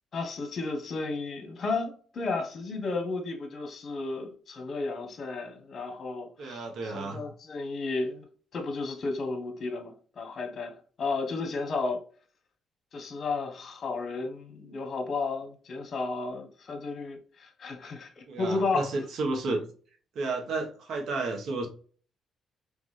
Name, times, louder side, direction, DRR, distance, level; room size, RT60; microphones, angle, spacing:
voice 1, 0.1-8.3 8.5-12.0 12.9-18.9, left 3 dB, 50° left, 1.2 m, -33 dB
voice 2, 6.4-7.2 18.3-19.7 20.1-21.7, right 3 dB, 70° right, 1.2 m, -32 dB
3.8 x 3.6 x 3.3 m
cardioid pair, 90°, 0 cm